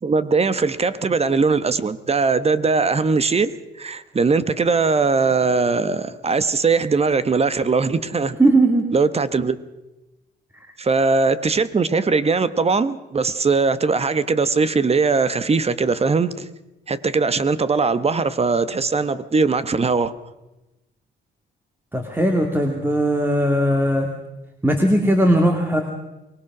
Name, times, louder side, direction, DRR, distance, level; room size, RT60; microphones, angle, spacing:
voice 1, 0.0-8.4 8.9-9.6 10.8-16.5 16.9-20.1, right 4 dB, 30° right, 1.2 m, -20 dB
voice 2, 8.4-8.9 21.9-24.1 24.6-25.8, right 1 dB, 10° right, 2.4 m, -18 dB
24.5 x 20.0 x 6.1 m
cardioid pair, 90°, 20 cm